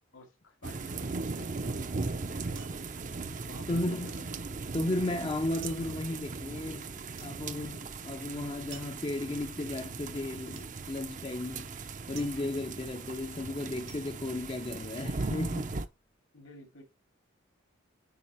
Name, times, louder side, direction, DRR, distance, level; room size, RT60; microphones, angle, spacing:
voice 1, 0.1-3.0 3.4-4.7 16.3-16.8, left 2 dB, 80° left, 2.6 m, -53 dB
sound 1, 0.6-15.9, right 3 dB, 40° right, 0.6 m, -38 dB
sound 2, 2.6-3.8 4.1-15.2 15.6-16.2, right 8 dB, 70° right, 1.7 m, -55 dB
voice 2, 3.7-4.3 4.7-15.7, left 1 dB, 25° left, 0.6 m, -35 dB
9.6 x 4.9 x 3.0 m
head